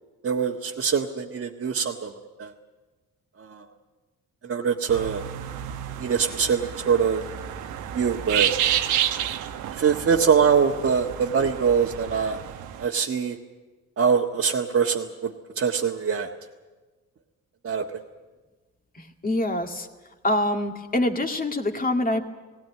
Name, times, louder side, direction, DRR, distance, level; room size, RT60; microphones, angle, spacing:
voice 1, 0.2-2.5 3.4-3.6 4.4-5.2 6.0-7.2 7.9-8.5 9.7-12.4 12.8-13.4 14.0-16.3 17.6-17.8, right 6 dB, 45° right, -2 dB, 1.5 m, -23 dB
sound 1, 4.9-12.8, right 10 dB, 90° right, 1.1 m, -30 dB
voice 2, 19.0-19.9 20.2-22.2, left 1 dB, 30° left, 4 dB, 2.1 m, -25 dB
19.0 x 17.0 x 9.5 m, 1.2 s
cardioid pair, 90°, 30 cm